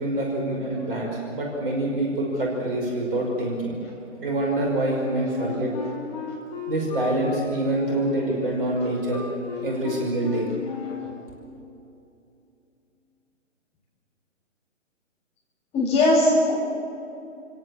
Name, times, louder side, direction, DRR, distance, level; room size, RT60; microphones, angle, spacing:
voice 1, 0.0-3.8 4.2-5.7 6.7-9.2 9.6-10.5, right 1 dB, 45° right, -1 dB, 5.9 m, -26 dB
Wind instrument woodwind instrument, 5.3-11.2, left 4 dB, 35° left, 4.6 m, -35 dB
voice 2, 15.7-16.5, left 1 dB, 15° left, -3 dB, 7.6 m, -20 dB
29.0 x 17.5 x 7.4 m, 2.7 s
figure-of-eight pair, 135°, 37 cm